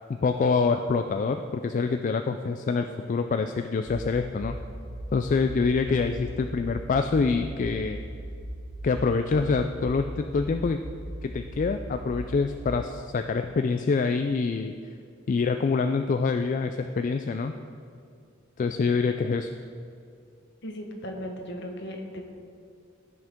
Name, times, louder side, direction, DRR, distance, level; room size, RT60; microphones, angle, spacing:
voice 1, 0.1-4.5 5.1-8.0 8.8-10.8 11.2-14.7 15.3-17.5 18.6-19.5, left 4 dB, 40° left, 7 dB, 0.3 m, -26 dB
sound 1, 3.9-12.7, right 1 dB, 85° right, 1.1 m, -38 dB
voice 2, 20.6-22.2, equal, 60° left, 3 dB, 1.2 m, -36 dB
15.0 x 6.2 x 3.7 m, 2.4 s
head